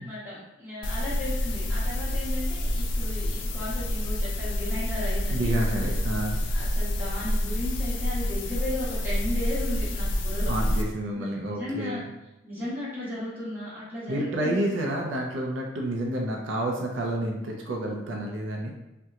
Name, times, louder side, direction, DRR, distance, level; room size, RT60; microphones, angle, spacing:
voice 1, 0.0-5.5 6.5-10.5 11.1-12.0 12.4-14.6, left 1 dB, 10° right, -10 dB, 1.2 m, -35 dB
sound 1, 0.8-10.8, left 1 dB, 80° left, 0.4 m, -28 dB
voice 2, 5.3-6.4 10.5-12.0 14.1-18.7, right 1 dB, 80° right, 0 dB, 0.5 m, -29 dB
2.8 x 2.2 x 3.5 m, 0.97 s
head